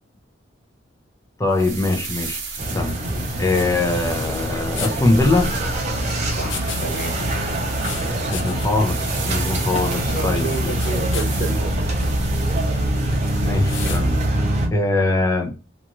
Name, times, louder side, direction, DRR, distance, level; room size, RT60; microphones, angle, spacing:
voice 1, 1.4-2.4 2.7-5.6 8.0-10.8 13.4-14.2 14.7-15.5, left 2 dB, 15° left, 0.5 m, -22 dB
sound 1, 1.5-14.3, right 4 dB, 80° right, 0.8 m, -34 dB
sound 2, 2.6-14.7, right 1 dB, 35° right, 0.7 m, -24 dB
Tissue Pull, 4.7-6.9 7.1-8.9 9.2-9.3 10.3-11.4 11.9-12.2 13.6-14.1, left 4 dB, 85° left, 0.6 m, -34 dB
voice 2, 6.4-7.2 10.1-11.8, right 2 dB, 50° left, 0.7 m, -30 dB
2.6 x 2.4 x 2.9 m
head